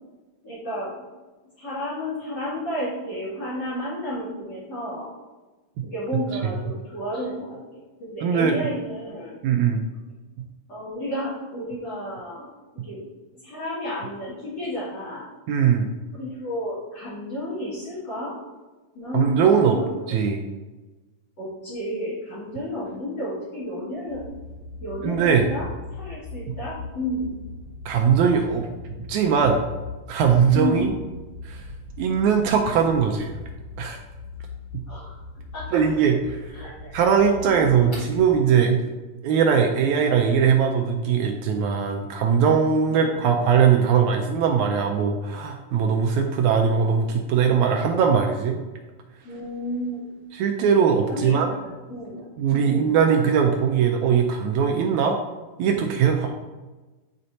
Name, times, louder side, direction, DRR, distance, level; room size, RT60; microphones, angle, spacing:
voice 1, 0.4-0.9 1.6-5.1 5.8-9.3 10.7-12.5 12.7-13.0 13.4-15.2 16.1-18.4 18.9-20.2 21.4-24.3 24.8-25.7 26.0-27.3 30.5-30.8 34.9-35.2 35.5-35.8 36.5-37.0 37.4-38.0 42.8-43.4 49.2-50.1 51.1-53.0, left 1 dB, 35° left, -12 dB, 2.2 m, -32 dB
voice 2, 8.2-8.6 9.4-9.9 15.5-15.9 19.1-19.8 20.1-20.5 25.0-25.5 27.8-29.6 30.1-30.9 31.4-31.6 32.0-33.3 33.8-34.0 35.7-36.5 36.9-38.8 39.2-48.6 50.3-51.5 52.4-55.2 55.6-56.3, right 7 dB, 85° right, 3 dB, 1.7 m, -20 dB
sound 1, 24.1-38.3, left 3 dB, 25° right, 1.6 m, -39 dB
9.7 x 4.3 x 2.7 m, 1.2 s
omnidirectional pair, 3.8 m